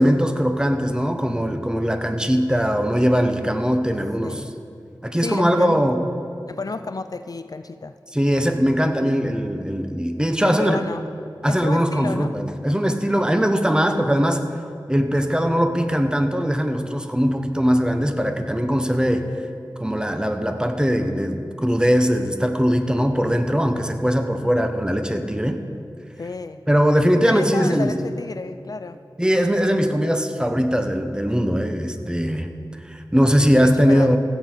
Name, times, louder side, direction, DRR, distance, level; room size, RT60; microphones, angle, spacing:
voice 1, 0.0-4.4 5.0-6.0 8.1-10.8 11.4-14.4 14.9-19.3 19.8-25.6 26.7-27.9 29.2-32.5 32.8-34.2, equal, 10° right, 6 dB, 0.9 m, -20 dB
voice 2, 5.2-5.8 6.5-7.9 9.0-9.2 10.4-11.0 11.5-12.4 23.7-23.9 26.2-26.6 27.3-29.0 33.4-34.2, left 3 dB, 50° left, 11 dB, 0.4 m, -31 dB
15.5 x 7.6 x 4.5 m, 2.5 s
wide cardioid pair, 45°, 8 cm